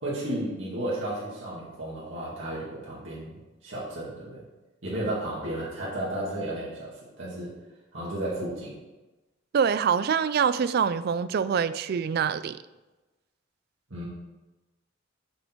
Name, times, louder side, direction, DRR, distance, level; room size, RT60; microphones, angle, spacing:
voice 1, 0.0-3.3 3.6-4.4 4.8-7.5 7.9-8.7 13.9-14.1, right 1 dB, 70° right, 2.2 m, -33 dB
voice 2, 9.5-12.6, right 7 dB, 50° right, 0.3 m, -25 dB
6.8 x 6.4 x 4.5 m
head